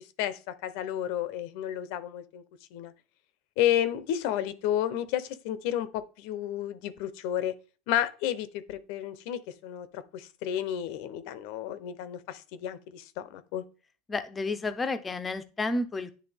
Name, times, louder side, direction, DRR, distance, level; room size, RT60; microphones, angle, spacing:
voice 1, 0.2-2.4 2.7-2.9 3.6-7.5 7.9-13.6, left 11 dB, 65° left, 0.7 m, -31 dB
voice 2, 14.1-16.1, left 3 dB, 15° left, 0.7 m, -31 dB
9.9 x 3.3 x 3.4 m
supercardioid pair, 135°, 0 cm